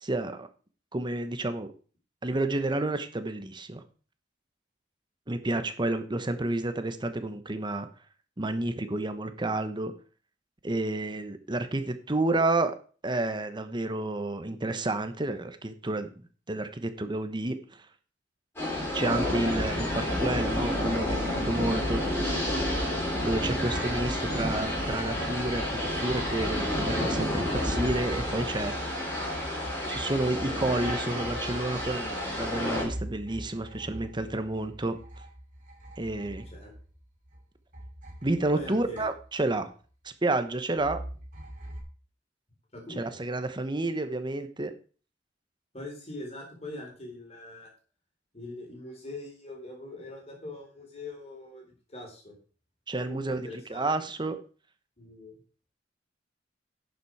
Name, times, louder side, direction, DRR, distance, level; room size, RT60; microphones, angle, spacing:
voice 1, 0.0-0.5 0.9-1.7 2.2-3.8 5.3-7.9 8.4-9.9 10.6-12.8 13.0-16.1 16.5-17.6 18.9-22.0 23.2-28.7 29.9-35.0 36.0-36.5 38.2-39.7 40.0-41.0 43.0-44.7 52.9-54.4, right 2 dB, 25° right, 9 dB, 1.0 m, -30 dB
sound 1, 18.6-32.8, left 1 dB, 15° left, 5.9 m, -30 dB
sound 2, 27.1-37.4 37.7-39.6 40.8-41.8, equal, 45° right, 3.7 m, -43 dB
voice 2, 38.5-39.1 42.7-43.2 45.7-47.7 48.3-52.3 53.0-53.9 55.0-55.4, left 2 dB, 35° left, 0 dB, 4.2 m, -42 dB
10.5 x 7.0 x 4.8 m, 0.39 s
head